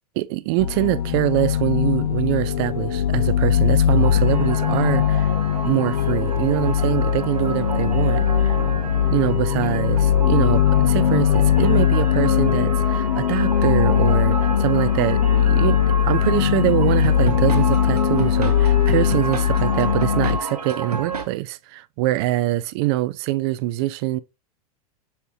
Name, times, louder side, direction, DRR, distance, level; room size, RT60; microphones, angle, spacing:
voice 1, 0.2-5.3 5.6-8.6 9.1-15.8 16.0-24.2, right 17 dB, 40° right, 0.4 m, -24 dB
sound 1, 0.6-20.4, left 10 dB, 75° left, 0.5 m, -20 dB
sound 2, 3.9-21.2, right 5 dB, 80° right, 0.9 m, -31 dB
5.6 x 3.3 x 2.7 m
figure-of-eight pair, 95°, 20 cm